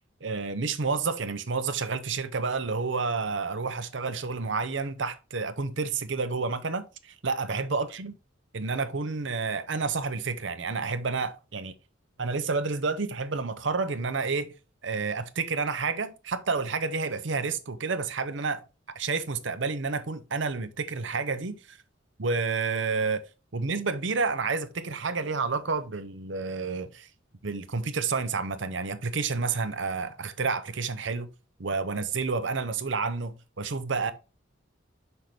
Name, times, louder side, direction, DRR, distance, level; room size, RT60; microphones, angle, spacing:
voice 1, 0.2-8.1 8.5-11.8 12.2-14.5 14.8-18.6 18.9-21.8 22.2-23.2 23.5-27.1 27.4-31.3 31.6-34.1, right 4 dB, 70° right, 0.8 m, -30 dB
5.9 x 5.4 x 3.3 m
head